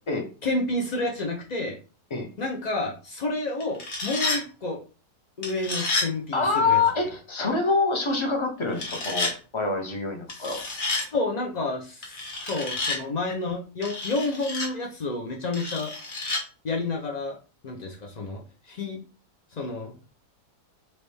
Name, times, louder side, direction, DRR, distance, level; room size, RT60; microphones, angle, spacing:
voice 1, 0.4-1.8 2.4-4.8 5.4-6.8 10.3-16.2 16.6-17.4 17.6-19.0 19.5-19.9, left 2 dB, 75° left, -1 dB, 0.3 m, -30 dB
sound 1, 3.6-4.4 5.4-6.1 8.7-9.3 10.3-11.1 12.0-13.0 13.8-14.7 15.5-16.4, left 3 dB, 45° left, 1.3 m, -30 dB
voice 2, 6.3-10.6, left 4 dB, 25° left, 2 dB, 0.6 m, -25 dB
4.1 x 3.0 x 3.3 m, 0.35 s
omnidirectional pair, 1.8 m